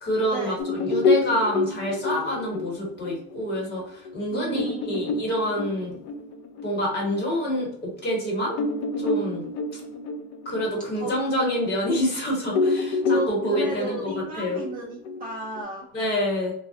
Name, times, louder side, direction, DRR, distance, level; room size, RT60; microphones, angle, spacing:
voice 1, 0.0-5.9 6.6-8.5 9.0-9.4 10.4-14.6 15.9-16.5, equal, 30° left, -2 dB, 1.0 m, -27 dB
sound 1, 0.6-7.6 8.1-8.2 8.5-12.2 12.5-15.6, left 3 dB, 55° left, 0.4 m, -28 dB
voice 2, 4.3-5.0 11.0-11.1 13.1-13.3 13.6-15.9, right 3 dB, 25° right, -4 dB, 0.4 m, -34 dB
3.0 x 2.0 x 2.7 m, 0.66 s
cardioid pair, 175°, 33 cm